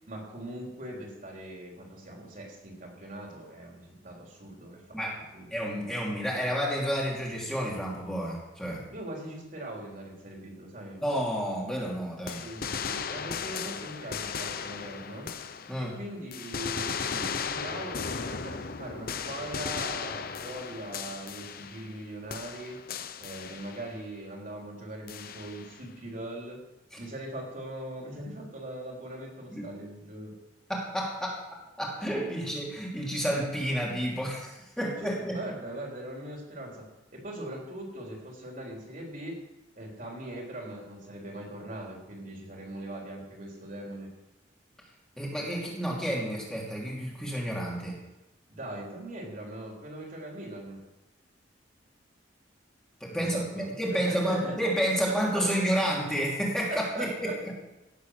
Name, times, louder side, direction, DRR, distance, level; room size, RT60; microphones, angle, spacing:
voice 1, 0.1-5.0 5.3-5.5 5.8-6.1 8.9-11.0 12.2-15.3 15.8-22.8 23.2-26.6 27.0-30.3 32.3-32.5 34.8-36.8 37.1-39.4 39.7-44.1 48.5-50.8 53.1-54.6 55.1-55.6 56.7-57.3, right 1 dB, 45° right, -1 dB, 4.0 m, -40 dB
voice 2, 5.5-8.8 11.0-12.4 15.7-15.9 29.5-29.7 30.7-31.3 31.8-35.4 45.2-48.0 53.0-57.5, equal, 5° left, -5 dB, 3.0 m, -30 dB
sound 1, 12.3-16.0 16.3-22.0 22.3-24.0 25.1-25.8, left 6 dB, 50° left, 0.8 m, -36 dB
17.5 x 8.3 x 6.7 m, 0.97 s
head